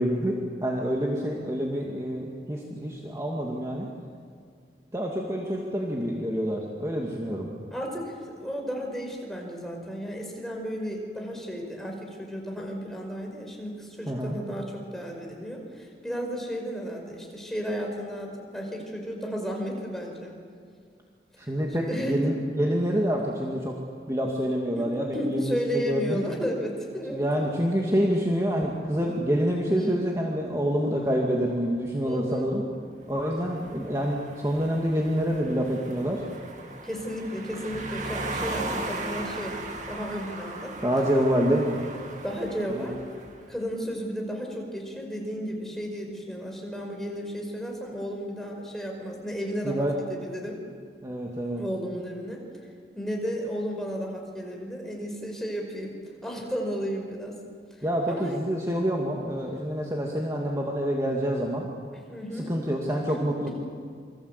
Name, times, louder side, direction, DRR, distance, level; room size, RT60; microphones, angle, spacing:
voice 1, 0.0-3.9 4.9-7.5 14.1-14.4 21.4-23.8 24.1-26.2 27.1-32.6 33.1-36.2 40.8-41.8 42.7-42.9 49.6-49.9 51.0-51.6 57.8-61.7 62.3-63.5, equal, 20° right, -1 dB, 2.3 m, -27 dB
voice 2, 7.7-20.3 21.9-22.3 24.7-27.5 29.7-30.0 32.0-32.5 36.8-39.6 39.9-40.8 42.2-43.0 43.5-50.6 51.6-52.4 52.9-55.9 56.2-57.4 58.1-58.4 62.1-62.5 63.1-63.2, equal, ahead, 0 dB, 5.1 m, -33 dB
sound 1, 33.1-43.4, right 2 dB, 45° right, 2.6 m, -38 dB
28.0 x 24.5 x 8.3 m, 2.1 s
head